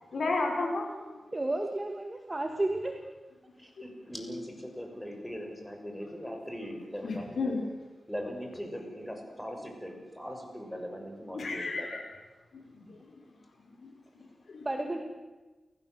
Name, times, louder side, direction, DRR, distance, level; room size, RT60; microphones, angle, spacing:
voice 1, 0.1-1.2 7.0-7.6 11.3-12.0 12.5-13.0 13.7-14.7, left 3 dB, 75° left, 2 dB, 6.5 m, -33 dB
voice 2, 1.3-3.0 14.6-15.0, right 2 dB, 25° right, 4 dB, 2.3 m, -32 dB
voice 3, 3.6-7.4 8.1-11.9, equal, 5° left, 3 dB, 6.7 m, -40 dB
29.0 x 16.0 x 8.2 m, 1.3 s
cardioid pair, 75°, 0 cm